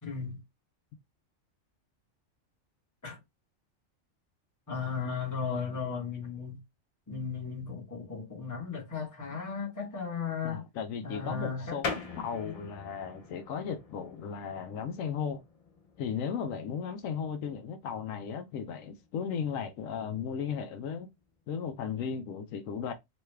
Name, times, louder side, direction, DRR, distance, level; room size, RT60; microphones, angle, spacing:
voice 1, 0.0-0.4 3.0-3.2 4.7-6.6 7.1-10.7 11.0-11.8 12.1-12.6, left 6 dB, 15° left, 0.9 m, -36 dB
voice 2, 10.4-15.4 16.0-21.1 21.5-22.9, left 7 dB, 80° left, 1.0 m, -36 dB
sound 1, 11.8-22.0, left 4 dB, 65° left, 0.3 m, -45 dB
3.2 x 2.2 x 3.1 m
omnidirectional pair, 1.4 m